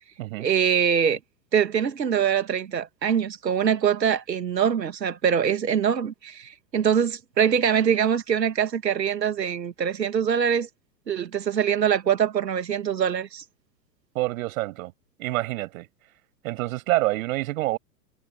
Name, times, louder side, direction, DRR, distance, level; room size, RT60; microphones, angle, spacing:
voice 1, 0.4-1.2 1.5-10.7 11.1-13.4, right 8 dB, 80° right, 1.9 m, -23 dB
voice 2, 14.1-14.9 15.2-15.9 16.4-17.8, right 18 dB, 55° right, 7.3 m, -27 dB
hypercardioid pair, 105°, 49 cm